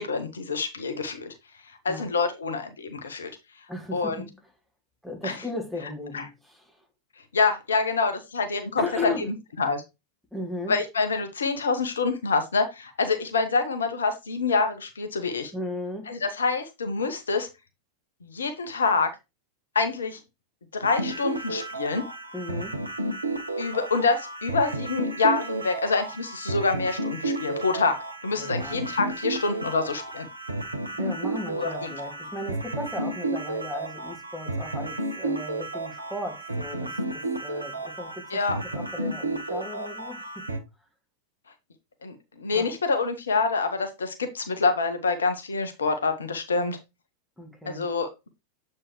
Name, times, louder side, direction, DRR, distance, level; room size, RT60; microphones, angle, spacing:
voice 1, 0.0-1.3 1.8-3.3 3.9-4.2 5.2-5.4 6.1-6.2 7.3-9.1 9.6-9.8 10.7-15.5 16.1-17.5 18.2-19.1 19.7-20.2 20.7-22.1 23.6-30.3 31.6-31.9 38.3-38.6 42.0-46.8 47.7-48.1, left 4 dB, 70° left, 0.9 m, -26 dB
voice 2, 3.7-4.3 5.0-6.8 8.8-9.3 10.3-10.8 15.5-16.1 22.3-22.8 28.4-28.8 30.9-40.5 42.5-42.7 47.4-47.9, left 2 dB, ahead, 1.7 m, -36 dB
sound 1, 20.8-40.6, right 2 dB, 80° right, 0.8 m, -32 dB
7.3 x 4.5 x 3.1 m
figure-of-eight pair, 90°, 0 cm